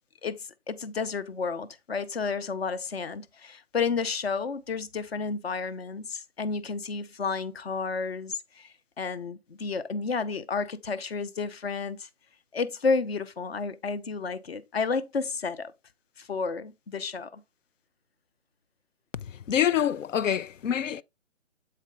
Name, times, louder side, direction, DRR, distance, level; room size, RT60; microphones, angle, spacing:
voice 1, 0.2-12.1 12.5-15.7 16.2-17.4, left 4 dB, 55° left, 0.8 m, -31 dB
voice 2, 19.5-21.0, left 9 dB, 85° left, 0.5 m, -26 dB
7.6 x 4.3 x 3.4 m
hypercardioid pair, 160°, 37 cm